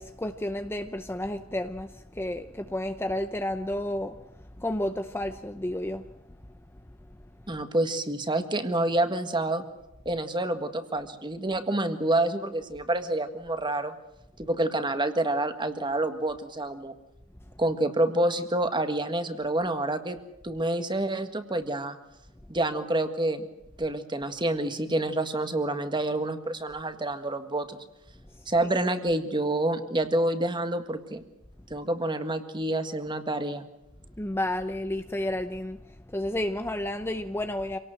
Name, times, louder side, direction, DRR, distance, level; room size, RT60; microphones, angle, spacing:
voice 1, 0.0-4.2 4.6-6.0 28.6-28.7 34.2-37.8, left 1 dB, 10° left, 0.7 m, -31 dB
voice 2, 7.5-9.6 10.0-13.9 14.4-16.9 17.6-20.2 20.4-22.0 22.5-23.4 23.8-27.8 28.5-31.2 31.7-33.6, right 1 dB, 25° right, 1.7 m, -28 dB
26.5 x 18.0 x 7.8 m
head